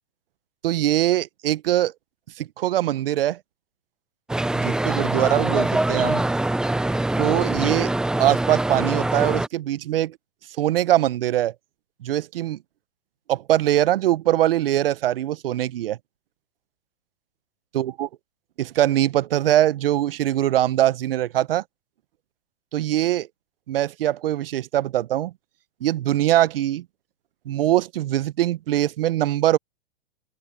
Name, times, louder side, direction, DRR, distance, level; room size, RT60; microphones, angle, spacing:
voice 1, 0.6-1.9 2.4-3.4 4.6-6.2 7.2-7.9 8.2-10.2 10.6-11.5 12.0-12.6 13.3-16.0 17.7-18.1 18.6-21.6 22.7-23.3 23.7-25.3 25.8-26.8 27.5-29.6, right 13 dB, 70° right, 1.0 m, -22 dB
sound 1, 4.3-9.5, right 2 dB, ahead, 0.5 m, -23 dB
open air
hypercardioid pair, 130°, 29 cm